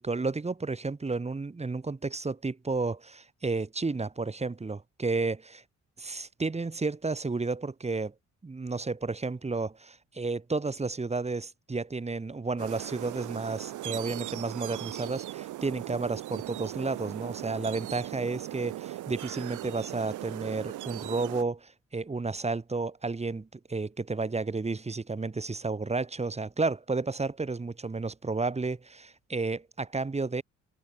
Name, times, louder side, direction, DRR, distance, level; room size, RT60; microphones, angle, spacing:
voice 1, 0.0-5.6 6.0-8.1 8.4-30.4, right 3 dB, 20° right, 2.2 m, -32 dB
sound 1, 12.6-21.4, right 15 dB, 80° right, 1.3 m, -38 dB
cardioid pair, 90°, 30 cm